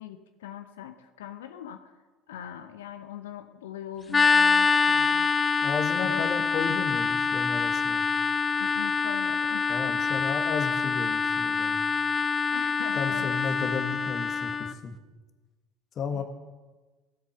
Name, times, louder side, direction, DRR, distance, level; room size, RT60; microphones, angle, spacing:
voice 1, 0.0-2.0 2.3-5.3 6.1-6.5 8.6-10.1 12.5-13.8 16.1-16.2, left 10 dB, 75° left, 9 dB, 0.7 m, -41 dB
sound 1, 4.1-14.7, left 5 dB, 25° left, 0.6 m, -25 dB
voice 2, 5.6-8.1 9.7-11.8 12.9-15.0 15.9-16.2, left 5 dB, 45° left, 7 dB, 1.7 m, -33 dB
16.0 x 8.4 x 6.6 m, 1.3 s
figure-of-eight pair, 65°, 0 cm